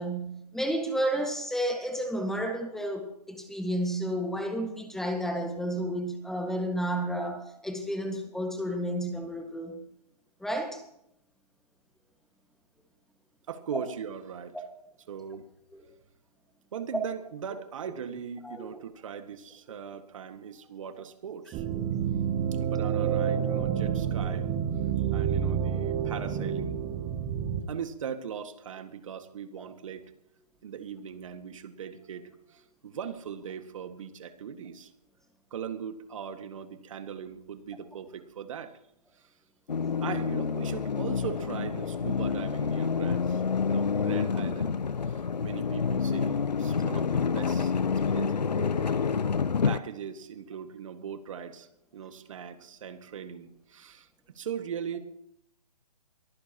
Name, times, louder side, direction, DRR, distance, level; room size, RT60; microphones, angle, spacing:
voice 1, 0.0-9.8 10.4-10.8 15.7-15.8 18.4-18.7 24.2-24.3, right 1 dB, ahead, 1.7 m, -31 dB
voice 2, 13.5-14.6 15.1-15.5 16.7-21.6 22.5-24.5 25.1-26.8 27.7-30.1 30.6-34.9 35.5-38.8 39.2-39.3 40.0-43.4 43.7-44.8 45.0-47.7 48.1-49.0 49.6-51.7 51.9-54.1 54.4-55.0, right 7 dB, 50° right, 1.8 m, -39 dB
sound 1, 21.5-27.6, right 8 dB, 20° right, 1.2 m, -29 dB
sound 2, 39.7-49.8, left 6 dB, 85° left, 0.7 m, -28 dB
23.0 x 15.0 x 3.0 m
figure-of-eight pair, 140°, 21 cm